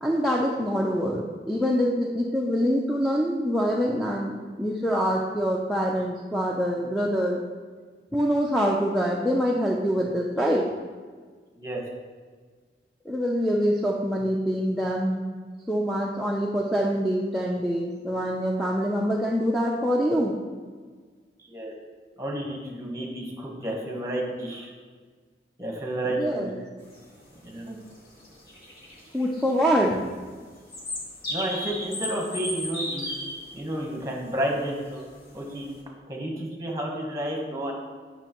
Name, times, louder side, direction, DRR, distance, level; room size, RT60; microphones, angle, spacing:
voice 1, 0.0-7.4 8.1-10.6 13.1-15.2 15.7-20.3 26.1-26.5 29.1-30.0, equal, ahead, -4 dB, 0.4 m, -25 dB
voice 2, 21.4-21.8 22.2-24.7 25.6-26.5 27.4-27.8 31.3-33.1 33.5-35.0 35.3-35.7 36.1-37.7, right 1 dB, 20° right, 0 dB, 1.1 m, -31 dB
sound 1, 26.8-35.8, left 1 dB, 60° left, 1.5 m, -36 dB
9.0 x 5.8 x 3.0 m, 1.5 s
head